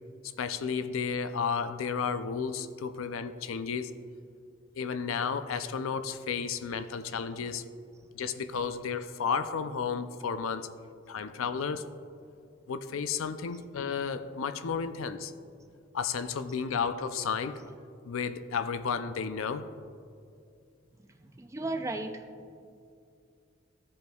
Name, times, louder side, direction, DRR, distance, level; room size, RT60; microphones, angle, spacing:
voice 1, 0.4-3.9 4.7-7.6 8.1-10.7 11.1-11.8 12.7-15.3 15.9-17.6 18.0-19.7, left 6 dB, 75° left, 10 dB, 0.4 m, -32 dB
voice 2, 21.2-22.9, right 2 dB, 15° right, 5 dB, 0.4 m, -37 dB
15.5 x 5.3 x 2.3 m, 2.4 s
head